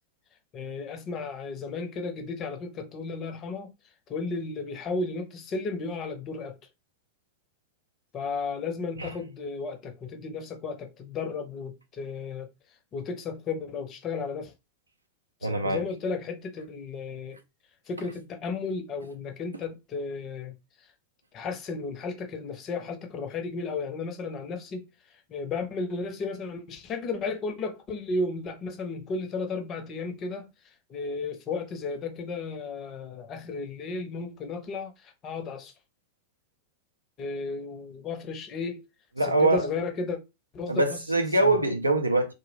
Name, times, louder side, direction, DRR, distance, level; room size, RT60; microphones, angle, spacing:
voice 1, 0.5-3.7 4.1-6.5 8.1-12.5 12.9-14.5 15.4-17.4 17.9-20.5 21.3-24.9 25.3-30.5 30.9-35.7 37.2-38.8 39.2-40.2 40.5-41.0 41.4-41.6, left 4 dB, 30° left, 0.6 m, -34 dB
voice 2, 15.4-15.8 39.2-39.7 40.7-42.3, right 2 dB, 80° right, 0.3 m, -23 dB
2.2 x 2.0 x 3.1 m
figure-of-eight pair, 90°, 0 cm